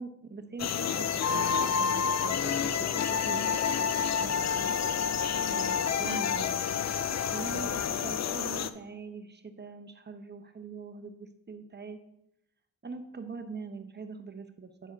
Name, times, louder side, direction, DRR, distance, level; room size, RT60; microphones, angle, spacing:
voice 1, 0.0-5.1 5.5-6.6 7.0-12.0 12.8-14.9, right 4 dB, 25° right, 7 dB, 0.9 m, -43 dB
sound 1, 0.6-8.7, left 7 dB, 45° left, 0.5 m, -29 dB
9.2 x 4.8 x 4.1 m, 0.85 s
cardioid pair, 70°, 38 cm